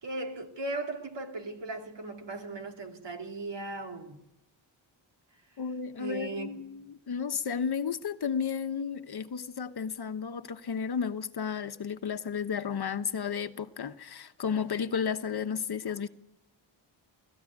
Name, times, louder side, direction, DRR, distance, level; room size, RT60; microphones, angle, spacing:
voice 1, 0.0-4.2 6.0-6.7, right 2 dB, 65° right, 2.7 m, -37 dB
voice 2, 5.6-16.1, left 7 dB, 55° left, 1.2 m, -33 dB
19.5 x 14.5 x 9.4 m
wide cardioid pair, 170°, 47 cm